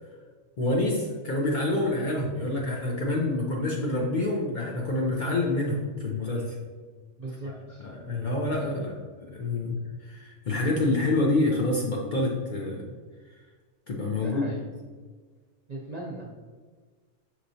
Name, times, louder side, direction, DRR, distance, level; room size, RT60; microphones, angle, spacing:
voice 1, 0.6-6.6 7.5-9.7 10.0-12.8 13.9-14.4, left 2 dB, 50° left, -1 dB, 0.6 m, -27 dB
voice 2, 7.2-7.8 14.2-14.6 15.7-16.2, right 2 dB, 50° right, -3 dB, 0.5 m, -38 dB
5.7 x 3.0 x 2.6 m, 1.5 s
omnidirectional pair, 1.3 m